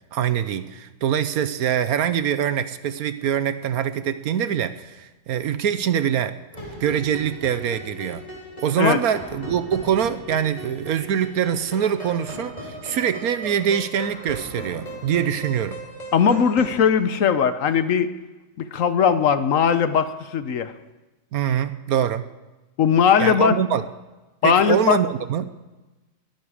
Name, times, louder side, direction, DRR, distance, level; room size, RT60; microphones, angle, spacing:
voice 1, 0.1-6.4 6.8-8.2 8.6-15.8 21.3-22.2 23.2-23.8 24.4-25.5, right 9 dB, 70° right, 12 dB, 1.2 m, -24 dB
sound 1, 6.5-16.9, equal, 25° left, 3.5 m, -38 dB
voice 2, 16.1-18.1 18.7-20.7 22.8-23.6 24.4-25.0, left 7 dB, 60° left, 12 dB, 1.1 m, -19 dB
21.5 x 12.5 x 4.9 m, 1.1 s
omnidirectional pair, 1.7 m